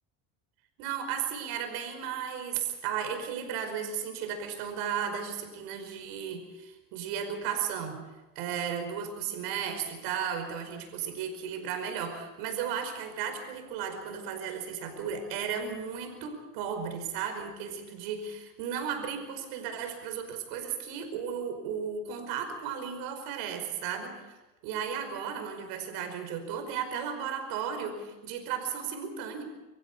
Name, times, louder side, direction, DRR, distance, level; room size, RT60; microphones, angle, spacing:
voice 1, 0.8-8.0 8.4-24.1 24.6-29.4, right 7 dB, 80° right, 6 dB, 5.3 m, -35 dB
25.0 x 15.5 x 8.4 m, 1.1 s
supercardioid pair, 85°, 39 cm